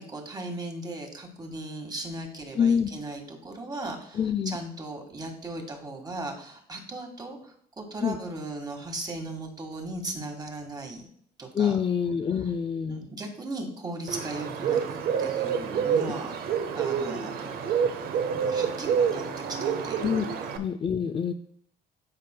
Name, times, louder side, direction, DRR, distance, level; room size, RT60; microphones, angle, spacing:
voice 1, 0.0-11.1 11.4-11.8 12.3-12.5 12.9-16.3 16.7-17.6 18.4-19.2 19.5-20.4, right 2 dB, 25° right, 3 dB, 1.8 m, -37 dB
voice 2, 2.6-2.9 4.1-4.6 8.0-8.2 11.5-13.1 20.0-21.3, left 7 dB, 30° left, 8 dB, 0.4 m, -26 dB
Bird, 14.1-20.6, right 7 dB, 65° right, 0.9 m, -28 dB
13.0 x 5.0 x 2.2 m, 0.65 s
cardioid pair, 110°, 17 cm